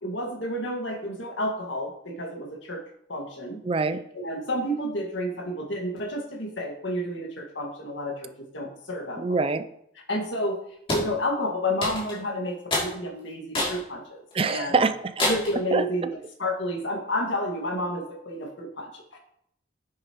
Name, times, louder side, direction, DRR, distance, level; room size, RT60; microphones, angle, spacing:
voice 1, 0.0-2.8 3.1-3.6 4.1-9.5 10.0-10.6 10.9-14.9 15.3-16.1 16.4-19.2, left 1 dB, 85° left, 1 dB, 1.9 m, -30 dB
voice 2, 3.6-4.0 9.2-9.6 14.3-15.3 15.7-15.8, right 4 dB, 30° right, 12 dB, 0.4 m, -24 dB
sound 1, 10.9-11.1 11.8-12.2 12.7-12.9 13.5-13.8 14.3-14.4 15.2-15.6, left 1 dB, 30° left, 2.8 m, -26 dB
9.4 x 8.0 x 3.0 m, 0.72 s
head